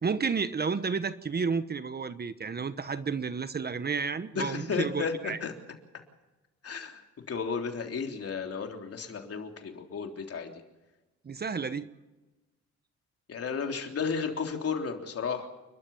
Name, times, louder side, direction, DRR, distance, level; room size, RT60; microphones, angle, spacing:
voice 1, 0.0-5.4 11.2-11.9, right 5 dB, 30° right, 13 dB, 1.1 m, -31 dB
voice 2, 4.3-5.5 6.6-7.0 7.3-10.5 13.3-15.5, left 5 dB, 50° left, 3 dB, 3.6 m, -33 dB
29.5 x 12.5 x 7.2 m, 1.1 s
cardioid pair, 90°, 30 cm